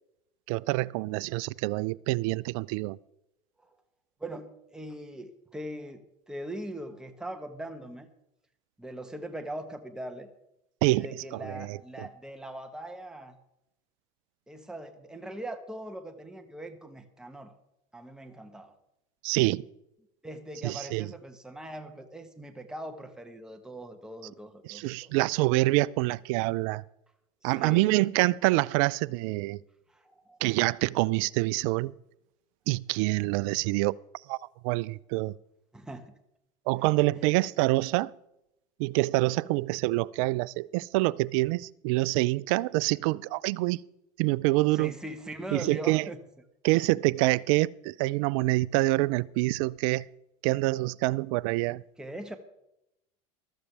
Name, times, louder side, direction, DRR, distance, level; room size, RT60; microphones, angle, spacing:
voice 1, 0.5-3.0 10.8-12.1 19.2-19.6 20.6-21.1 24.6-26.8 27.4-29.6 30.4-31.9 32.7-34.0 34.3-34.4 34.6-35.3 36.7-38.1 38.8-43.8 44.2-44.9 45.5-46.1 46.6-50.1 50.4-51.8, right 20 dB, 65° right, 0.4 m, -26 dB
voice 2, 4.2-8.1 8.8-10.3 10.9-13.4 14.5-17.5 17.9-18.7 20.2-25.1 27.4-27.9 29.9-30.4 35.7-36.1 44.7-46.2 52.0-52.4, right 1 dB, 5° right, 1.3 m, -41 dB
14.5 x 13.0 x 3.4 m
hypercardioid pair, 95°, 18 cm